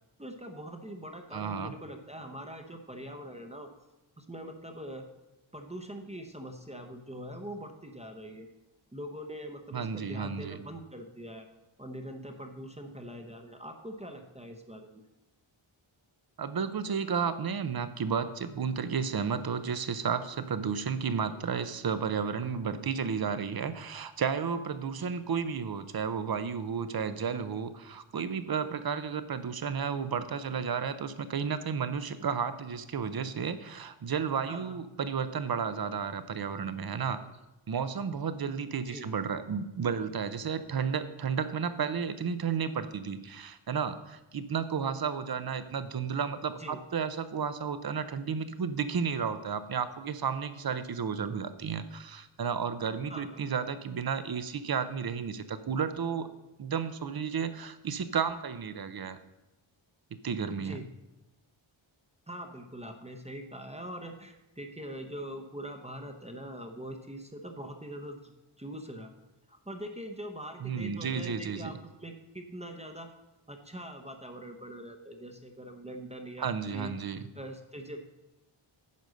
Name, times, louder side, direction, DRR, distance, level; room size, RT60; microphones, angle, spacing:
voice 1, 0.2-3.7 4.2-5.1 5.5-8.5 8.9-11.5 11.8-14.9 25.0-25.3 34.5-34.7 38.9-39.1 46.5-46.8 53.1-53.4 60.6-60.8 62.3-69.1 69.5-73.1 73.5-76.9 77.3-78.0, equal, 15° right, 4 dB, 0.8 m, -43 dB
voice 2, 1.3-1.7 9.7-10.6 16.4-37.2 37.7-56.3 56.6-59.2 60.2-60.8 70.6-71.8 76.4-77.3, right 6 dB, 50° right, 12 dB, 0.7 m, -32 dB
9.5 x 5.4 x 6.3 m, 1.0 s
wide cardioid pair, 120°, 48 cm